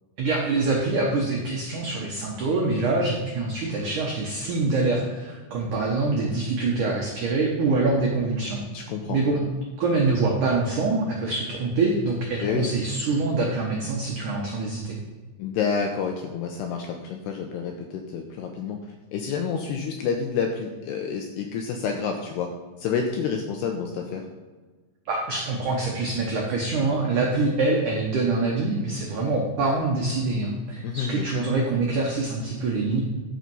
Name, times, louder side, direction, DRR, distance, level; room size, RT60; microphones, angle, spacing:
voice 1, 0.2-8.6 9.1-9.4 9.8-15.0 25.1-33.0, right 3 dB, 85° right, -1 dB, 1.7 m, -25 dB
voice 2, 8.7-9.2 12.4-12.7 15.4-18.8 19.1-22.5 22.8-24.3 30.8-31.4, left 6 dB, 85° left, 3 dB, 2.4 m, -29 dB
12.5 x 5.8 x 5.4 m, 1.3 s
omnidirectional pair, 5.6 m